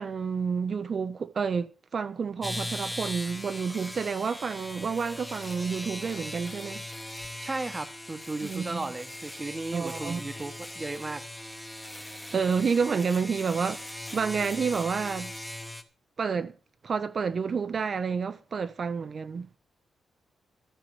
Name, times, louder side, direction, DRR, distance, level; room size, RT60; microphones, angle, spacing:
voice 1, 0.0-6.8 8.4-8.8 9.7-10.2 12.1-15.3 16.2-16.5 16.8-19.6, right 5 dB, 40° right, 0.6 m, -29 dB
sound 1, 2.4-15.8, left 1 dB, 5° left, 1.0 m, -39 dB
voice 2, 7.4-11.2, right 3 dB, 20° right, 1.0 m, -35 dB
13.5 x 6.7 x 6.7 m
wide cardioid pair, 150°, 0 cm